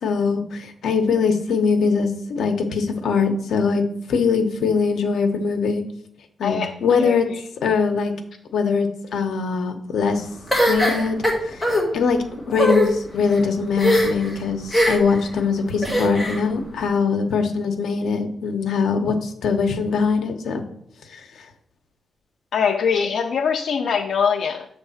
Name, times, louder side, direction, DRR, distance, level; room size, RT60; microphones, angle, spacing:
voice 1, 0.0-5.8 6.4-7.3 7.6-8.1 8.5-10.3 10.7-20.6 21.1-21.3, left 5 dB, 75° left, 6 dB, 0.9 m, -22 dB
voice 2, 6.4-7.4 22.5-24.7, left 6 dB, 60° left, 4 dB, 0.4 m, -23 dB
sound 1, 10.5-11.8 12.5-12.9 13.8-14.3 14.7-15.2 15.8-16.4, equal, 5° left, 1.3 m, -20 dB
7.3 x 3.3 x 5.7 m, 0.68 s
wide cardioid pair, 165°, 0 cm